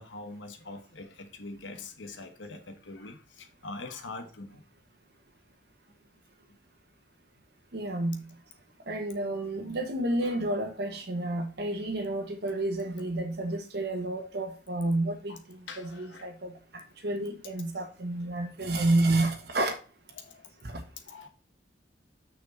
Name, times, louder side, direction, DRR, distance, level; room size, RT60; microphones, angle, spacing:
voice 1, 0.0-4.6 15.3-15.4 15.7-16.3 20.1-20.5 21.1-21.3, left 3 dB, 90° left, 1.1 m, -43 dB
voice 2, 7.7-8.2 8.9-19.7 20.6-20.8, right 2 dB, 60° right, 1.2 m, -30 dB
6.6 x 6.3 x 4.1 m
head